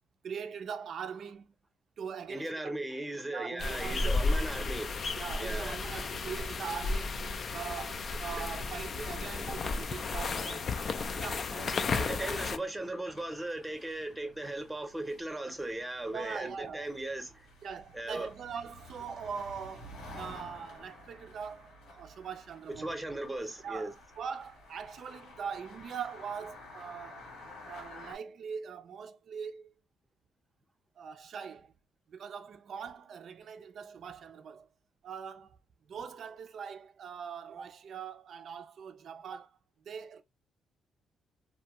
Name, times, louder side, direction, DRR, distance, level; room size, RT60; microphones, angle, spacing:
voice 1, 0.2-1.5 2.0-2.8 3.3-4.1 5.2-7.2 7.5-10.7 11.2-12.2 16.1-16.9 17.6-22.9 23.6-27.2 27.6-29.7 31.0-31.7 32.1-34.7 35.0-35.6 35.9-39.6 39.9-40.2, right 7 dB, 60° right, 0.4 m, -42 dB
voice 2, 2.3-5.0 5.4-5.8 8.1-8.4 11.9-17.5 17.9-18.3 22.8-23.9, right 1 dB, 10° right, 0.7 m, -37 dB
sound 1, 3.6-12.6, left 3 dB, 50° left, 0.3 m, -33 dB
sound 2, 10.1-28.2, left 1 dB, 85° left, 1.4 m, -52 dB
2.5 x 2.2 x 2.8 m
cardioid pair, 90°, 0 cm